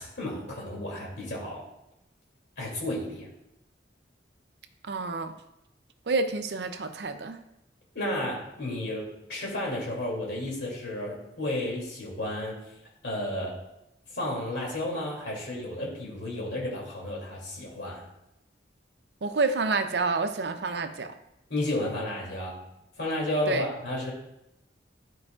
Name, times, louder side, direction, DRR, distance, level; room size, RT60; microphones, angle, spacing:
voice 1, 0.0-1.7 2.6-3.3 7.9-12.6 13.0-13.6 14.1-18.0 21.5-22.6 23.0-24.1, left 1 dB, 70° left, -3 dB, 2.6 m, -32 dB
voice 2, 4.8-5.4 6.1-7.4 19.2-21.1 23.5-23.7, right 3 dB, 65° right, 9 dB, 0.6 m, -28 dB
12.0 x 4.7 x 2.4 m, 0.87 s
head